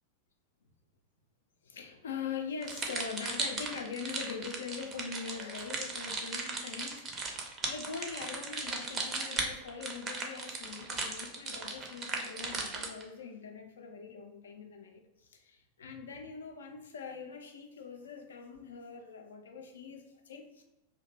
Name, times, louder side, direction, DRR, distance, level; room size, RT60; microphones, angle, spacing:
voice 1, 1.6-20.6, left 5 dB, 65° left, 3 dB, 0.4 m, -43 dB
sound 1, 2.6-13.0, right 3 dB, 30° right, 0.5 m, -37 dB
2.6 x 2.1 x 3.0 m, 0.94 s
figure-of-eight pair, 90°, 0 cm